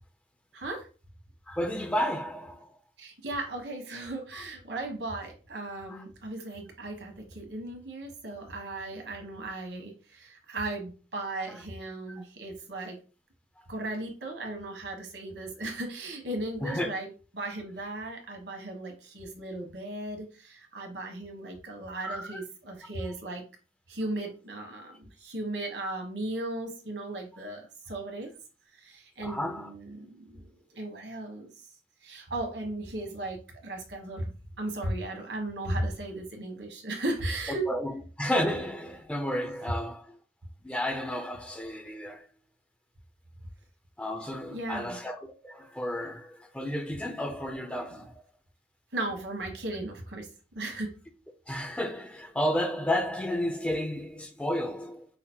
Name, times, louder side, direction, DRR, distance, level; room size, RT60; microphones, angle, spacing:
voice 1, 0.5-0.9 3.0-13.0 13.7-23.4 23.9-28.3 28.8-31.5 32.0-37.7 44.5-45.0 47.9-48.0 48.9-50.3 50.5-50.9, right 2 dB, 75° right, 1.3 m, -36 dB
voice 2, 1.5-2.7 4.3-4.4 5.9-6.0 11.5-11.6 12.1-12.2 16.6-16.9 22.0-22.4 29.2-29.7 37.7-37.9 38.2-40.2 40.6-42.3 44.0-48.2 51.5-55.1, left 1 dB, 5° left, 0.5 m, -32 dB
5.6 x 2.0 x 4.4 m
head